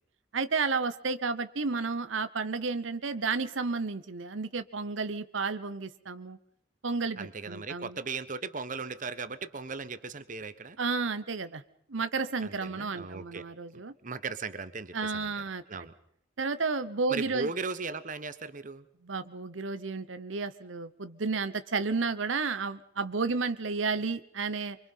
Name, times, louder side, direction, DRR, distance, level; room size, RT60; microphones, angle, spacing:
voice 1, 0.3-6.4 6.8-7.9 10.8-11.6 11.9-13.9 14.9-15.6 16.4-17.5 19.0-24.8, right 4 dB, 85° right, 12 dB, 1.0 m, -32 dB
voice 2, 7.2-10.8 12.4-15.9 17.1-18.9, right 4 dB, 45° right, 13 dB, 1.2 m, -38 dB
25.0 x 24.5 x 5.6 m, 0.69 s
head